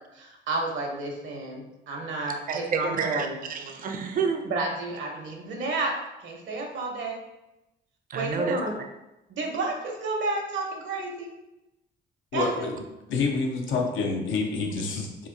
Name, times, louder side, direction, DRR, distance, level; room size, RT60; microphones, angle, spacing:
voice 1, 0.1-3.4 4.4-5.9 6.2-7.2 8.1-8.7 9.3-11.3 12.3-12.7, right 3 dB, 70° right, 1 dB, 0.8 m, -31 dB
voice 2, 2.5-4.4 8.1-8.6, right 5 dB, 45° right, 5 dB, 0.5 m, -29 dB
voice 3, 12.3-12.8 13.1-15.3, left 4 dB, 85° left, 2 dB, 0.6 m, -28 dB
2.9 x 2.4 x 3.7 m, 0.94 s
cardioid pair, 90°, 20 cm